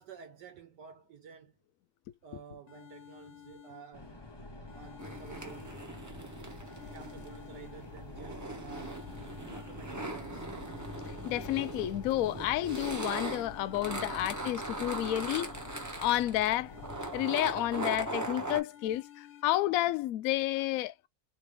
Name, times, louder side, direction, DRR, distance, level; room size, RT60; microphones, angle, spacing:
voice 1, 0.0-1.6 2.2-4.3 4.7-5.8 6.6-9.1 9.5-10.5, right 6 dB, 70° right, 1.4 m, -52 dB
sound 1, 2.2-2.3 2.7-4.2 4.7-6.2 6.7-8.2 8.7-10.2 10.6-12.2 12.6-14.2 14.6-16.2 16.6-18.2 18.6-19.4, left 12 dB, 60° left, 1.1 m, -54 dB
sound 2, 3.9-17.1, left 2 dB, 25° left, 0.6 m, -49 dB
sound 3, 5.0-18.6, right 1 dB, 15° right, 0.9 m, -40 dB
voice 2, 11.2-15.5 16.0-16.7 17.1-20.9, left 14 dB, 85° left, 0.7 m, -30 dB
4.2 x 3.2 x 3.3 m
omnidirectional pair, 2.0 m